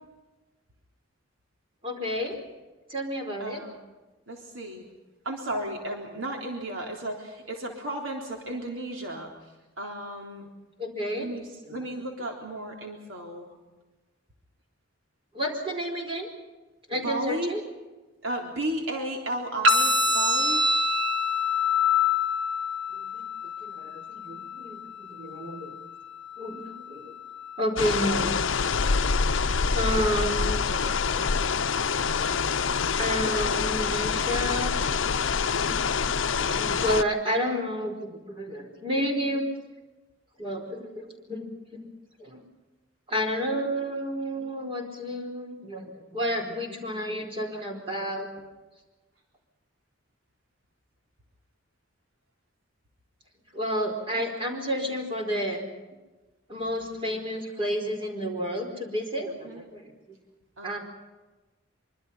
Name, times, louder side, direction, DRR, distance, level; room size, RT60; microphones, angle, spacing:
voice 1, 1.8-2.4 2.9-3.6 10.8-11.3 11.7-11.8 15.3-16.3 16.9-17.6 23.0-25.8 26.4-27.1 27.6-28.4 29.6-31.2 32.6-35.3 35.6-35.9 36.2-39.5 40.4-41.9 42.2-42.4 43.1-45.8 46.1-48.3 53.5-55.7 56.5-59.9 60.6-60.8, equal, 30° right, 2 dB, 4.6 m, -31 dB
voice 2, 3.4-3.8 4.3-4.9 5.2-9.3 9.8-10.5 11.2-13.6 17.0-17.5 18.2-20.6 59.4-59.6 60.6-60.8, right 1 dB, 85° right, 1 dB, 3.7 m, -34 dB
sound 1, 19.6-27.6, left 3 dB, 70° right, 2.4 m, -27 dB
sound 2, 27.8-37.0, left 5 dB, 75° left, 0.7 m, -26 dB
25.0 x 25.0 x 5.7 m, 1.1 s
head